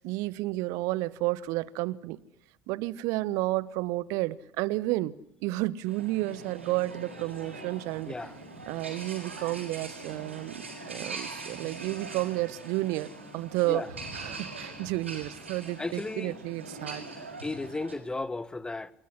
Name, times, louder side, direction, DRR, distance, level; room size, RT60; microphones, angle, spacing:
voice 1, 0.0-2.2 2.7-8.1 8.7-13.8 14.1-17.0, right 18 dB, 55° right, 1.2 m, -31 dB
sound 1, 5.9-17.9, right 3 dB, 85° right, 6.4 m, -42 dB
voice 2, 15.8-16.3 17.4-18.9, left 2 dB, 10° left, 1.5 m, -34 dB
29.0 x 20.0 x 9.9 m
figure-of-eight pair, 65°, 6 cm